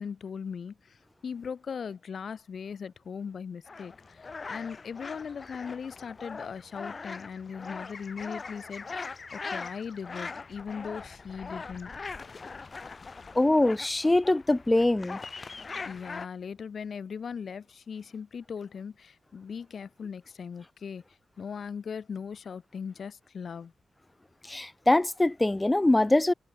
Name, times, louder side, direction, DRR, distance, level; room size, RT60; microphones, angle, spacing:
voice 1, 0.0-11.9 15.8-21.0 21.4-23.7, left 6 dB, 70° left, 1.7 m, -39 dB
sound 1, 3.7-16.3, left 4 dB, 50° left, 2.4 m, -41 dB
voice 2, 13.3-15.2 24.4-26.3, left 2 dB, 20° left, 0.4 m, -23 dB
cardioid pair, 70°, 0 cm